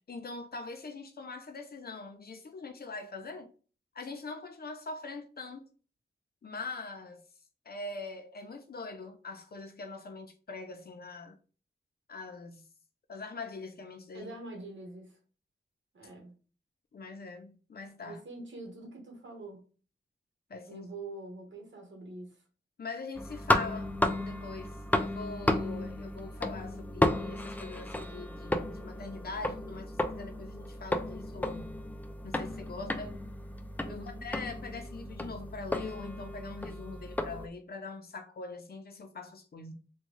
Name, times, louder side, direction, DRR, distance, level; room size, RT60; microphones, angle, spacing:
voice 1, 0.1-3.5 3.9-5.6 6.4-7.2 7.7-11.4 12.1-12.7 13.1-14.3 16.9-18.2 20.5-20.9 22.8-31.7 32.2-33.1 33.9-39.7, left 3 dB, 55° left, 0.6 m, -43 dB
voice 2, 14.1-15.2 15.9-16.3 18.0-19.6 20.7-22.4 33.8-34.2, right 2 dB, 75° right, 1.3 m, -45 dB
sound 1, 23.1-37.5, left 1 dB, 10° left, 0.3 m, -33 dB
3.6 x 2.2 x 3.1 m
wide cardioid pair, 120°, 19 cm